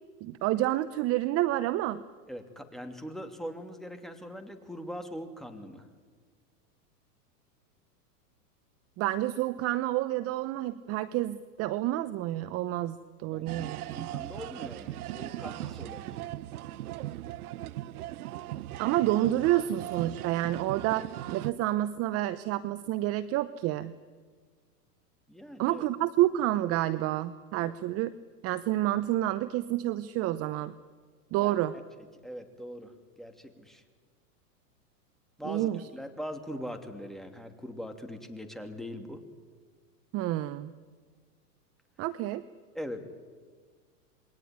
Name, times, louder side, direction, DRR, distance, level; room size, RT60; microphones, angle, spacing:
voice 1, 0.2-2.0 9.0-14.1 18.8-23.9 25.6-28.1 28.4-30.7 31.3-31.7 35.4-35.8 40.1-40.7 42.0-42.4, right 14 dB, 30° right, 15 dB, 0.8 m, -29 dB
voice 2, 2.3-5.9 13.3-16.3 25.3-25.8 27.6-27.8 31.4-31.5 32.2-32.9 33.2-33.8 35.4-39.2 42.7-43.1, equal, ahead, 5 dB, 2.7 m, -41 dB
sound 1, 13.5-21.5, right 14 dB, 65° right, 0.9 m, -38 dB
28.0 x 21.5 x 9.5 m, 1.5 s
hypercardioid pair, 120°, 47 cm